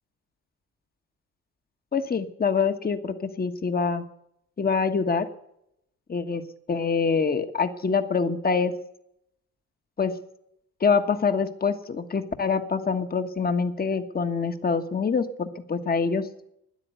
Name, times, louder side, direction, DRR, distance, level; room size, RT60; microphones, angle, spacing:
voice 1, 1.9-4.0 4.6-5.3 6.1-6.4 6.7-8.7 10.0-10.1 10.8-16.3, left 5 dB, 30° left, 8 dB, 1.4 m, -25 dB
13.0 x 10.0 x 9.2 m, 0.77 s
cardioid pair, 90°, 30 cm